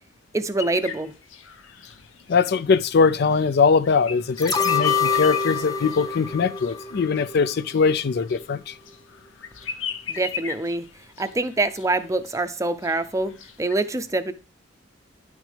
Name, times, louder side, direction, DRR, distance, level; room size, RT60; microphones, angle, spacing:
voice 1, 0.3-1.1 10.1-10.9 11.2-13.3 13.6-14.3, right 2 dB, 15° right, 0.5 m, -25 dB
sound 1, 0.6-13.8, left 7 dB, 90° left, 0.8 m, -38 dB
voice 2, 2.3-8.7, left 5 dB, 55° left, 0.4 m, -21 dB
sound 2, 4.4-7.5 7.9-8.0, left 6 dB, 20° left, 0.7 m, -25 dB
10.0 x 6.3 x 3.4 m
head